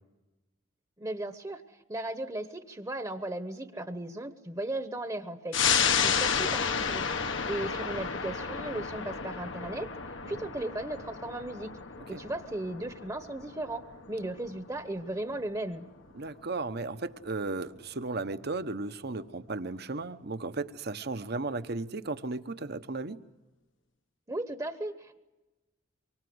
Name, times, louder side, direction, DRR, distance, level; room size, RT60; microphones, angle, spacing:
voice 1, 1.0-1.6 1.9-5.6 5.9-7.0 7.5-9.9 10.3-11.7 12.1-15.8 24.3-25.2, right 1 dB, 20° right, 1.1 m, -36 dB
sound 1, 5.5-16.5 16.9-17.0, left 6 dB, 70° left, 1.2 m, -32 dB
voice 2, 16.1-23.2, right 3 dB, 55° right, 1.0 m, -35 dB
24.5 x 24.5 x 7.9 m
head